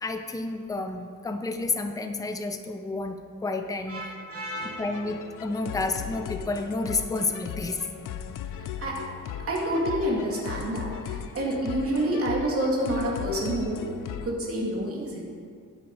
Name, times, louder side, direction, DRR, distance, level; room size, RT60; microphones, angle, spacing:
voice 1, 0.0-4.1 4.6-7.9, left 3 dB, 10° left, 6 dB, 0.6 m, -30 dB
voice 2, 3.9-4.9 8.5-9.0 9.5-13.9 14.2-15.2, right 1 dB, 45° right, -3 dB, 2.6 m, -28 dB
sound 1, 4.6-14.3, left 9 dB, 85° left, 0.6 m, -38 dB
13.0 x 8.0 x 4.8 m, 2.2 s
wide cardioid pair, 140°, 31 cm